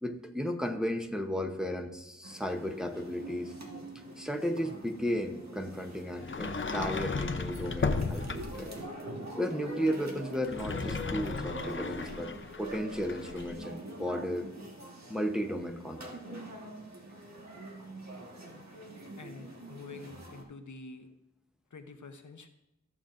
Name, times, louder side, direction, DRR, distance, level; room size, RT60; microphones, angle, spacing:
voice 1, 0.0-3.5 4.2-8.7 9.4-12.3 12.6-14.5 15.1-16.2, equal, ahead, 3 dB, 0.8 m, -34 dB
sound 1, 2.2-20.4, right 1 dB, 65° right, 1.6 m, -45 dB
Sliding door, 6.2-8.7 10.3-13.5, left 4 dB, 40° left, 0.6 m, -35 dB
voice 2, 19.2-21.1 21.7-22.5, left 3 dB, 80° left, 6 dB, 0.9 m, -47 dB
14.0 x 7.1 x 2.6 m, 0.92 s
wide cardioid pair, 60°, 30 cm